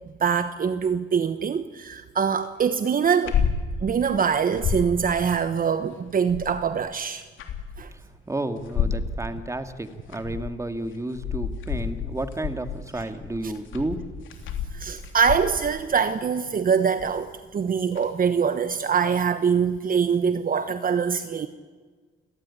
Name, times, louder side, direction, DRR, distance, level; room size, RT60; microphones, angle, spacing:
voice 1, 0.2-3.4 3.8-7.2 7.8-7.9 13.4-13.5 14.7-21.5, right 6 dB, 45° right, 1.2 m, -24 dB
sound 1, 3.0-3.6 4.0-4.1 4.4-4.9 6.1-6.7 7.2-7.9 8.6-9.1 9.9-10.6 10.9-15.7 17.0-17.3 18.0-18.1, left 7 dB, 75° left, 3.2 m, -30 dB
voice 2, 7.9-14.0, right 1 dB, 15° right, 2.1 m, -32 dB
29.0 x 17.0 x 9.9 m
cardioid pair, 90°, 20 cm